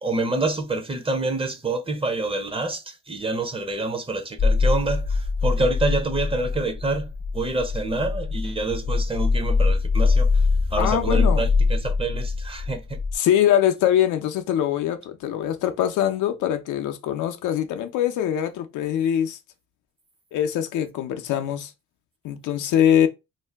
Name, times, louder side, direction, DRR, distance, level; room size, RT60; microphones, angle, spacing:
voice 1, 0.0-7.1 7.3-10.3 10.7-13.0, right 2 dB, 20° right, 0.6 m, -27 dB
sound 1, 4.4-13.1, left 4 dB, 25° left, 0.4 m, -23 dB
voice 2, 10.8-11.5 13.1-19.4 20.3-21.7 22.2-23.1, left 10 dB, 80° left, 0.5 m, -23 dB
2.7 x 2.2 x 3.3 m
cardioid pair, 90°, 30 cm